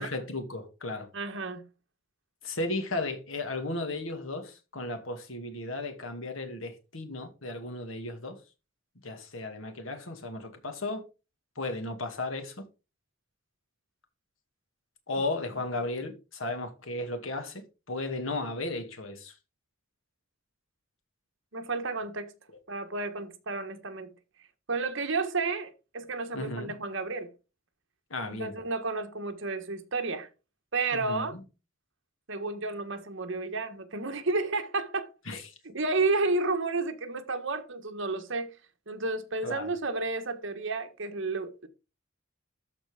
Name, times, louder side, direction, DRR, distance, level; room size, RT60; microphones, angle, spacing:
voice 1, 0.0-1.1 2.4-8.4 9.0-11.0 11.6-12.6 15.1-19.3 26.3-26.7 28.1-28.5 30.9-31.4 35.3-35.4 39.4-39.7, left 2 dB, 80° left, 2.3 m, -35 dB
voice 2, 1.1-1.6 21.5-22.3 22.7-24.1 24.7-27.3 28.3-30.3 30.7-31.3 32.3-35.1 35.6-38.6 38.9-41.7, right 3 dB, 65° right, 1.6 m, -31 dB
13.0 x 4.5 x 5.1 m
head